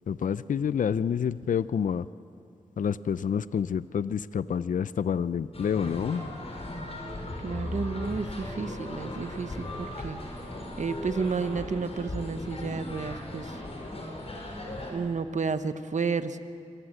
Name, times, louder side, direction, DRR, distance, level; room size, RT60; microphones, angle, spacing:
voice 1, 0.1-2.1 2.8-6.2, left 7 dB, 75° left, 16 dB, 0.5 m, -28 dB
sound 1, 5.5-14.9, left 1 dB, 50° left, 5.4 m, -37 dB
voice 2, 7.4-10.2 10.8-13.6 14.9-16.4, right 5 dB, 60° right, 11 dB, 1.1 m, -31 dB
26.0 x 18.0 x 7.8 m, 2.4 s
cardioid pair, 45°, 14 cm